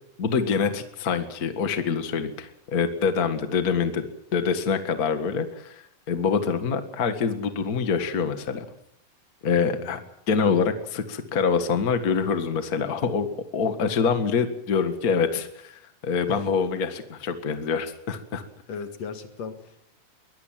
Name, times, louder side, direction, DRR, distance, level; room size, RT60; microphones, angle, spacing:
voice 1, 0.2-4.1 4.3-8.6 9.4-10.0 10.3-13.3 13.5-18.4, left 5 dB, 70° left, 8 dB, 0.8 m, -25 dB
voice 2, 9.6-10.1 16.3-16.4 18.7-19.9, left 6 dB, 50° left, 7 dB, 2.4 m, -37 dB
23.0 x 19.5 x 7.5 m, 0.72 s
omnidirectional pair, 4.8 m